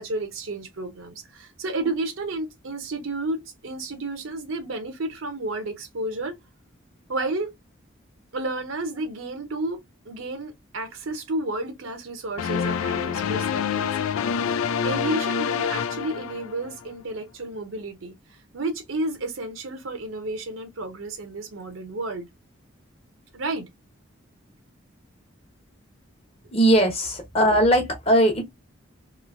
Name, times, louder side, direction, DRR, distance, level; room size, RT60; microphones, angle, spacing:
voice 1, 0.0-6.3 7.1-7.5 8.3-14.6 14.8-22.3 23.3-23.7, right 2 dB, 75° right, 0.7 m, -31 dB
sound 1, 12.4-16.9, left 7 dB, 90° left, 0.4 m, -26 dB
voice 2, 26.5-28.4, right 1 dB, 30° left, 1.0 m, -19 dB
3.1 x 2.7 x 2.5 m
head